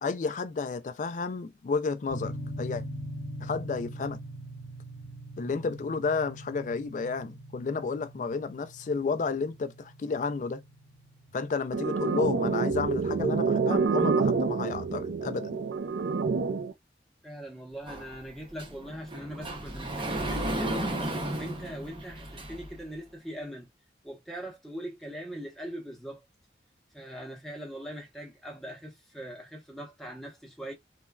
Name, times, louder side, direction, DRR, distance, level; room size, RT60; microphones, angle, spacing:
voice 1, 0.0-2.8 3.4-4.2 5.4-10.6 11.3-15.6, left 4 dB, 45° left, 0.3 m, -31 dB
sound 1, 2.1-12.2, equal, 85° left, 0.8 m, -42 dB
sound 2, 11.7-16.7, right 4 dB, 75° right, 0.5 m, -27 dB
voice 2, 17.2-20.9 21.3-23.7 24.0-26.2 26.9-30.7, equal, ahead, 0.8 m, -41 dB
Sliding door, 17.9-22.8, right 1 dB, 30° right, 0.7 m, -34 dB
3.2 x 2.2 x 2.3 m
head